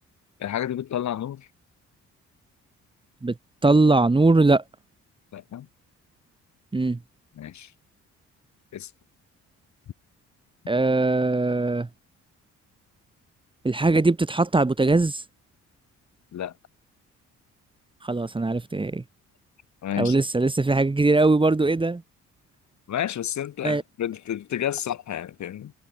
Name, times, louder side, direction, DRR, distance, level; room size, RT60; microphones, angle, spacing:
voice 1, 0.4-1.5 5.3-5.7 7.4-7.7 8.7-8.9 16.3-16.5 19.8-20.2 22.9-25.7, left 10 dB, 65° left, 5.6 m, -30 dB
voice 2, 3.6-4.6 6.7-7.0 10.7-11.9 13.6-15.2 18.0-19.0 20.0-22.0 23.6-23.8, right 3 dB, 15° right, 1.8 m, -21 dB
cardioid pair, 90°, 30 cm